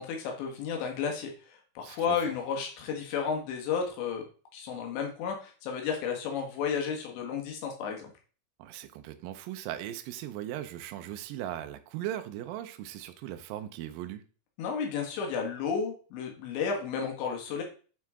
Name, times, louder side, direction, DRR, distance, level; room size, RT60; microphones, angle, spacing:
voice 1, 0.0-4.2 4.5-8.1 14.6-17.6, left 6 dB, 80° left, 3.8 m, -32 dB
voice 2, 1.8-2.2 8.6-14.3, right 12 dB, 85° right, 2.0 m, -38 dB
9.2 x 4.7 x 3.6 m
omnidirectional pair, 5.0 m